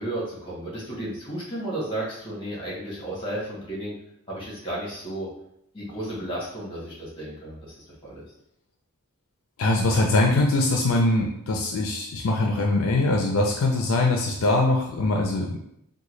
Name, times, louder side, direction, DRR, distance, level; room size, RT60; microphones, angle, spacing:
voice 1, 0.0-3.9 4.3-5.3 5.7-7.7 8.0-8.2, right 1 dB, 25° left, -5 dB, 1.3 m, -33 dB
voice 2, 9.6-15.6, left 2 dB, 70° left, 1 dB, 0.4 m, -22 dB
3.7 x 2.2 x 3.1 m, 0.75 s
head